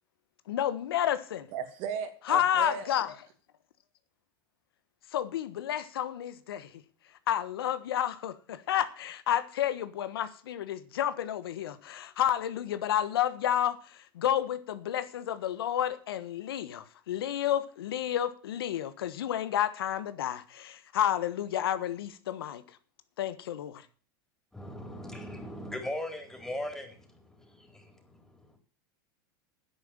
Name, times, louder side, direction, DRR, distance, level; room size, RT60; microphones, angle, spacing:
voice 1, 0.5-1.5 2.3-3.1 5.1-6.7 7.3-13.8 14.1-22.6 23.2-23.8, left 11 dB, 85° left, 1.4 m, -30 dB
voice 2, 1.5-2.9, right 7 dB, 55° right, 2.6 m, -36 dB
voice 3, 24.5-28.6, left 1 dB, 5° left, 3.9 m, -39 dB
10.5 x 8.4 x 7.6 m
supercardioid pair, 110°, 12 cm